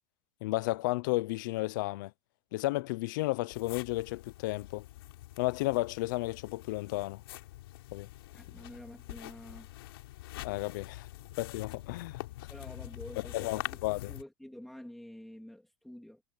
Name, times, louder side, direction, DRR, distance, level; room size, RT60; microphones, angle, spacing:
voice 1, 0.4-2.1 2.5-4.8 5.4-7.2 7.9-8.1 10.4-11.1 11.4-12.2 13.3-14.1, left 20 dB, 55° left, 0.6 m, -33 dB
sound 1, 3.5-14.2, left 16 dB, 75° left, 4.9 m, -45 dB
voice 2, 8.3-9.7 12.5-16.2, left 1 dB, ahead, 2.2 m, -49 dB
supercardioid pair, 180°, 13 cm